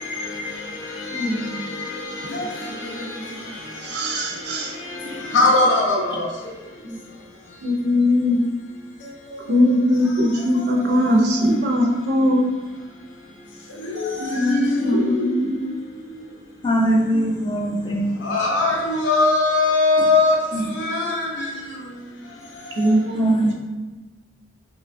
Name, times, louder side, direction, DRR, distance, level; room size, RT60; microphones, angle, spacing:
voice 1, 1.1-1.6 3.8-4.7 6.8-7.0 7.6-8.4 9.5-12.5 14.2-15.6 22.8-23.4, left 1 dB, 60° right, 0 dB, 0.4 m, -20 dB
voice 2, 5.3-6.3 14.0-14.6 14.9-15.2 18.3-20.4 20.8-21.5, left 2 dB, 80° left, -2 dB, 0.5 m, -19 dB
voice 3, 16.6-18.4 20.5-20.7 23.1-23.5, right 1 dB, 25° left, -3 dB, 0.4 m, -21 dB
2.9 x 2.2 x 2.5 m, 1.2 s
head